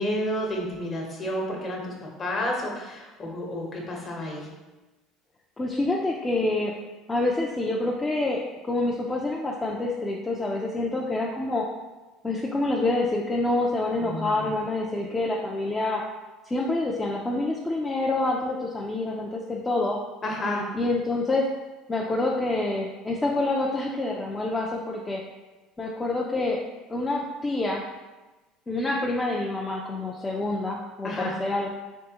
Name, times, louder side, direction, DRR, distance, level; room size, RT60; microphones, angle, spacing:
voice 1, 0.0-4.5 14.0-14.5 20.2-20.8 31.0-31.3, left 1 dB, 40° left, -1 dB, 1.0 m, -31 dB
voice 2, 5.6-6.7 7.1-11.6 12.2-16.0 16.5-20.0 20.7-21.5 21.9-25.2 25.8-26.6 26.9-27.8 28.7-31.7, left 2 dB, 20° left, -3 dB, 0.5 m, -27 dB
3.5 x 3.3 x 2.9 m, 1.2 s
hypercardioid pair, 75°, 0 cm